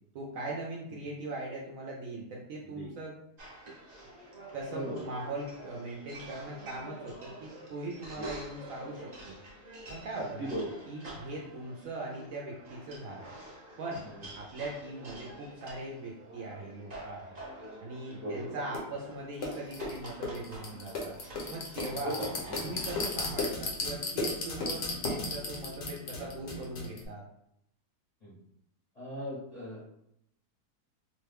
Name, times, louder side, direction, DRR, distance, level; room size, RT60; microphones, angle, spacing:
voice 1, 0.1-3.2 4.5-9.4 9.9-10.5 10.9-13.3 13.8-14.1 14.4-17.4 17.8-21.1 21.5-22.3 22.6-27.2, right 2 dB, 70° right, -3 dB, 0.8 m, -40 dB
sound 1, 3.4-23.1, right 1 dB, 40° right, 0.6 m, -48 dB
voice 2, 4.7-5.0 8.1-8.3 10.2-10.7 14.2-14.3 18.1-18.5 22.0-22.9 28.2-28.4 29.0-29.9, equal, 35° left, -9 dB, 0.7 m, -38 dB
sound 2, 18.7-18.8 19.4-27.0, left 3 dB, 80° left, 1.4 m, -35 dB
3.0 x 2.1 x 3.3 m, 0.76 s
omnidirectional pair, 1.8 m